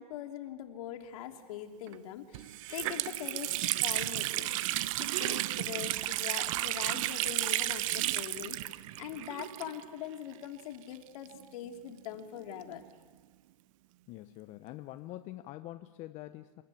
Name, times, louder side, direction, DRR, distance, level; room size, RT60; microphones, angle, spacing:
voice 1, 0.0-12.8, left 10 dB, 60° left, 4 dB, 3.0 m, -43 dB
Water tap faucet, 1.9-2.0 2.3-10.1 10.3-10.4 11.3-12.8, right 16 dB, 55° right, 0.9 m, -33 dB
voice 2, 14.1-16.6, left 15 dB, 35° left, 10 dB, 0.9 m, -45 dB
28.0 x 13.0 x 8.5 m, 1.4 s
hypercardioid pair, 130°, 20 cm